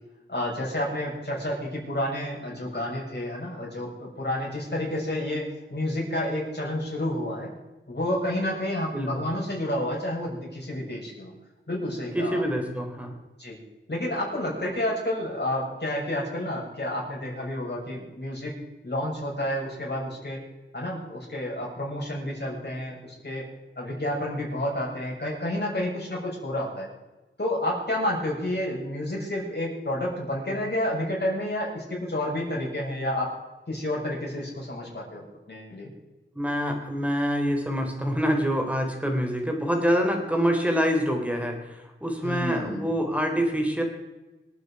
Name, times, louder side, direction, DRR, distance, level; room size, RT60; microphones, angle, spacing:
voice 1, 0.3-7.5 7.9-11.3 11.7-12.4 13.4-13.6 13.9-18.5 18.8-20.4 20.7-23.5 23.8-26.9 27.4-33.4 33.7-35.9 42.2-42.9, left 1 dB, 55° left, -4 dB, 6.9 m, -30 dB
voice 2, 8.9-9.3 12.1-13.1 36.4-43.8, equal, 5° right, 3 dB, 3.7 m, -26 dB
26.0 x 9.1 x 4.9 m, 1.1 s
wide cardioid pair, 60°, 20 cm